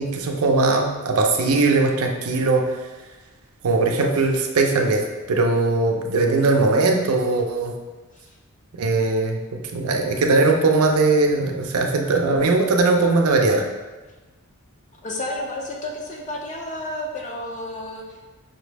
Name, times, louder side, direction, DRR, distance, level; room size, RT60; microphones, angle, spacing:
voice 1, 0.0-2.7 3.6-7.7 8.8-9.4 9.7-13.7, right 3 dB, 75° right, 2 dB, 0.5 m, -20 dB
voice 2, 15.0-18.0, left 1 dB, 35° left, 0 dB, 0.6 m, -31 dB
5.5 x 2.0 x 3.3 m, 1.2 s
head